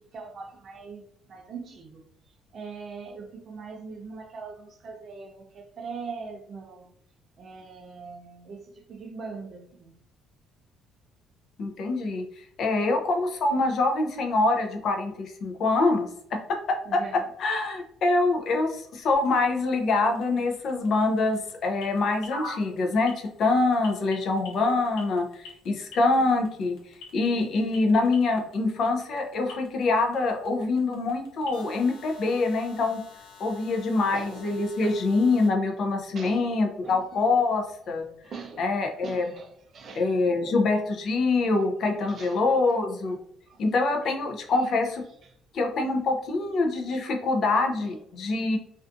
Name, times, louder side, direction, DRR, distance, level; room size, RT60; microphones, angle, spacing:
voice 1, 0.0-2.0 2.5-6.9 7.4-10.0 16.9-17.6 34.1-35.0 36.1-36.5 36.8-37.2 38.2-38.7 39.0-40.7 41.9-42.4 42.7-42.8 43.1-43.2 43.5-43.6 44.0-44.1 45.2-45.4 47.8-48.0, right 4 dB, 40° right, 0.4 m, -42 dB
voice 2, 11.6-12.2 12.6-17.0 17.4-26.8 27.1-33.0 33.4-38.0 38.6-39.3 39.9-43.2 43.6-45.0 45.5-48.6, left 3 dB, 50° left, 0.4 m, -25 dB
sound 1, 18.1-35.5, left 2 dB, 85° left, 0.8 m, -48 dB
2.5 x 2.3 x 2.5 m
cardioid pair, 150°, 0 cm